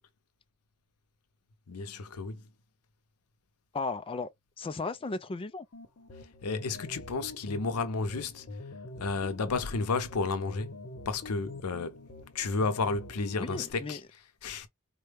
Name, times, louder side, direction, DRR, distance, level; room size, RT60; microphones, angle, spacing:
voice 1, 1.7-2.4 6.4-8.5 9.0-10.7 11.1-12.0 12.3-14.0 14.4-14.7, left 4 dB, 85° left, 0.6 m, -32 dB
voice 2, 3.7-4.3 4.6-5.7 13.4-14.0, left 3 dB, 25° left, 0.4 m, -35 dB
sound 1, 5.7-13.7, left 2 dB, 50° left, 0.9 m, -45 dB
4.0 x 2.2 x 3.3 m
head